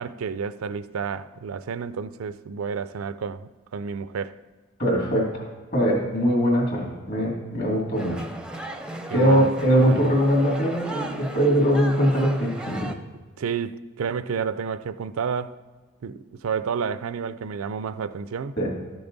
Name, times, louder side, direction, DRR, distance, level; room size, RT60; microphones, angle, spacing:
voice 1, 0.0-4.3 9.1-9.5 9.9-10.1 13.4-15.6 16.0-18.7, right 6 dB, 85° right, 0.4 m, -30 dB
voice 2, 4.8-5.4 5.7-8.3 9.1-12.9 18.6-18.7, equal, 50° left, 2.7 m, -21 dB
sound 1, 7.9-12.9, right 1 dB, 5° right, 0.5 m, -36 dB
12.5 x 7.0 x 4.0 m
head